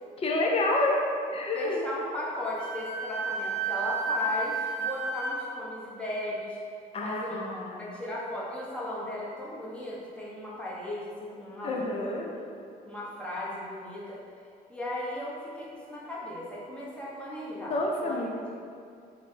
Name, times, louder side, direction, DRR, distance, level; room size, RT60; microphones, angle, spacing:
voice 1, 0.2-1.0 1.3-1.8 6.9-7.8 11.6-12.3 17.7-18.4, left 2 dB, 35° left, 0 dB, 0.5 m, -28 dB
voice 2, 1.5-6.6 7.0-7.4 7.8-12.1 12.9-14.2 14.7-18.6, left 1 dB, 5° left, -7 dB, 0.8 m, -36 dB
Wind instrument woodwind instrument, 2.6-5.4, right 3 dB, 20° right, 0.9 m, -31 dB
3.2 x 2.1 x 3.9 m, 2.4 s
cardioid pair, 110°, 17 cm